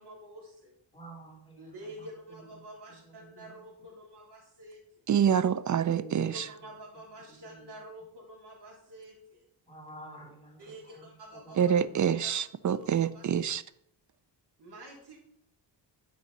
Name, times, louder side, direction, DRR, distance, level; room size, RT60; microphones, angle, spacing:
voice 1, 0.0-0.8 1.6-5.1 6.5-9.4 10.6-11.6 12.2-12.9 13.1-13.2 14.6-15.2, right 1 dB, 60° right, 4.0 m, -48 dB
voice 2, 0.9-3.5 5.7-6.4 7.3-7.7 9.7-12.0, right 2 dB, 10° left, 3.0 m, -50 dB
voice 3, 5.1-6.4 11.6-13.6, right 8 dB, 45° right, 0.4 m, -26 dB
11.0 x 5.7 x 5.3 m
cardioid pair, 115°, 45 cm